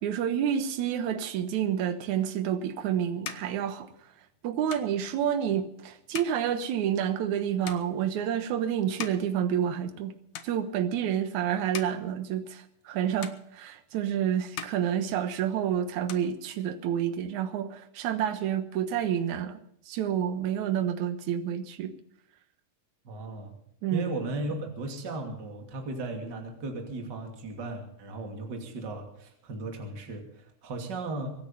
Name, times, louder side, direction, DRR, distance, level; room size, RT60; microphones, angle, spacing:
voice 1, 0.0-3.9 4.4-10.1 10.4-19.6 19.9-21.9 23.8-24.1, right 9 dB, 65° right, 2.5 m, -29 dB
sound 1, 2.4-10.1 10.3-11.0 11.5-12.9 13.2-14.1 14.4-15.6 15.9-17.0, left 9 dB, 65° left, 2.4 m, -44 dB
voice 2, 23.0-23.5 23.9-31.3, right 2 dB, 35° right, 3.0 m, -36 dB
24.5 x 9.7 x 5.6 m
omnidirectional pair, 3.8 m